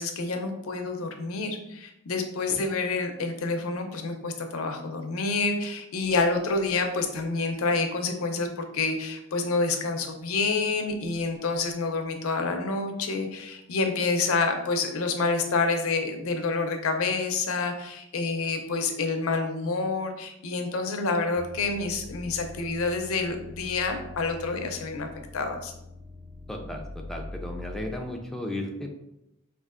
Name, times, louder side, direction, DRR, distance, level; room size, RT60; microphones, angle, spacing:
voice 1, 0.0-25.1 25.3-25.7, left 3 dB, 75° left, 5 dB, 0.5 m, -28 dB
sound 1, 21.3-28.0, left 2 dB, 55° right, 0.7 m, -43 dB
voice 2, 26.5-29.0, left 1 dB, ahead, 1 dB, 0.3 m, -35 dB
4.4 x 2.4 x 2.4 m, 0.87 s
head